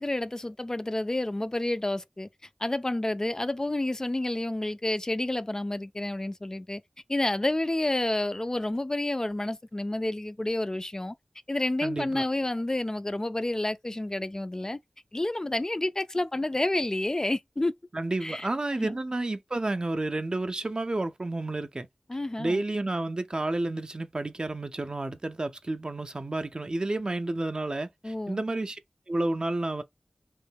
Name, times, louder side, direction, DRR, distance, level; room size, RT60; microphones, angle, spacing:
voice 1, 0.0-2.3 2.6-6.8 7.1-11.1 11.5-14.8 15.1-17.7 18.2-18.5 18.8-19.0 22.1-22.6 28.0-28.4, left 1 dB, 30° left, 0.3 m, -29 dB
voice 2, 11.8-12.3 17.9-21.9 22.4-28.8 29.1-29.8, right 2 dB, 45° right, 0.4 m, -31 dB
3.0 x 2.1 x 3.3 m
wide cardioid pair, 55°, 2 cm